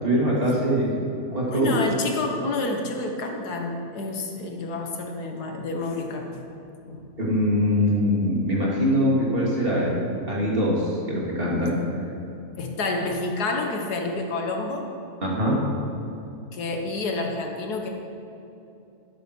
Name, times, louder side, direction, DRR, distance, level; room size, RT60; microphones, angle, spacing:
voice 1, 0.0-0.9 1.3-1.8 7.2-9.9 10.3-11.8 15.2-15.6, equal, 35° right, -5 dB, 2.8 m, -22 dB
voice 2, 1.5-6.4 6.8-7.0 12.6-14.9 16.5-17.9, left 3 dB, 85° left, 2 dB, 1.8 m, -29 dB
12.0 x 11.0 x 4.6 m, 2.8 s
omnidirectional pair, 1.6 m